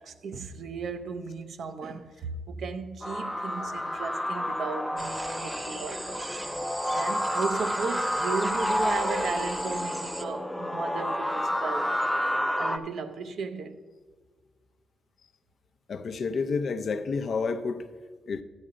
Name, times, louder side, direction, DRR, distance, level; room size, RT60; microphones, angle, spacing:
voice 1, 0.0-6.2 6.9-11.9 12.6-13.8, right 5 dB, 75° right, 0.6 m, -35 dB
sound 1, 3.0-12.8, left 1 dB, 5° left, 0.5 m, -30 dB
sound 2, 5.0-10.2, right 1 dB, 20° right, 0.8 m, -38 dB
voice 2, 15.9-17.8 18.3-18.4, left 4 dB, 60° left, 0.5 m, -29 dB
11.0 x 8.5 x 3.8 m
cardioid pair, 90°, 0 cm